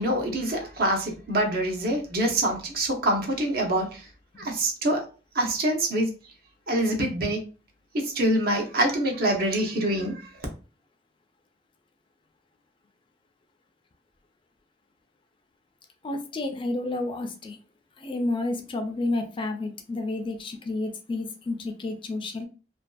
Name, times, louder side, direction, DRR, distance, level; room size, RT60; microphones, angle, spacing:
voice 1, 0.0-4.1 4.4-5.1 5.3-6.1 6.7-7.4 7.9-10.4, right 1 dB, 60° right, 0.7 m, -25 dB
voice 2, 16.0-17.6 18.0-22.5, left 2 dB, 30° left, 0.3 m, -30 dB
2.5 x 2.3 x 2.2 m
head